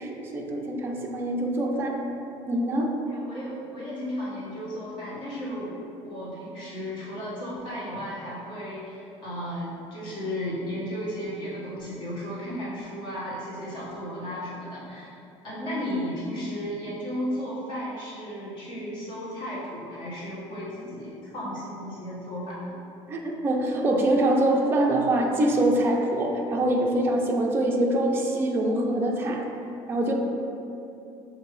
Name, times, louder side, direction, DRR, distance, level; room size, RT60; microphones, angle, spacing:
voice 1, 0.0-2.0 2.5-3.0 23.1-29.5 29.9-30.1, right 1 dB, 20° right, 0 dB, 0.4 m, -24 dB
voice 2, 3.1-5.8 6.0-15.1 15.4-22.7, equal, 45° left, -8 dB, 1.3 m, -34 dB
6.1 x 2.7 x 3.1 m, 2.7 s
cardioid pair, 165°, 12 cm